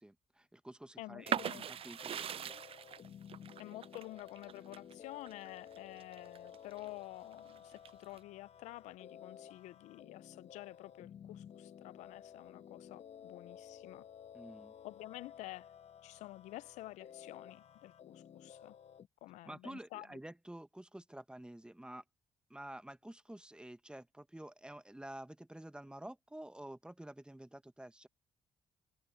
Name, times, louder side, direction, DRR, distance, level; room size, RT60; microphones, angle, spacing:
voice 1, 0.0-2.6 14.3-14.7 19.4-22.0 22.5-28.1, right 1 dB, 10° right, 1.2 m, -50 dB
voice 2, 1.0-1.7 3.6-14.0 14.8-15.7 16.0-18.8 19.2-20.1, left 17 dB, 90° left, 0.4 m, -50 dB
sound 1, 1.2-19.1, left 8 dB, 60° left, 1.1 m, -54 dB
sound 2, 1.3-6.9 7.3-8.2, right 9 dB, 55° right, 0.5 m, -41 dB
supercardioid pair, 65°, 12 cm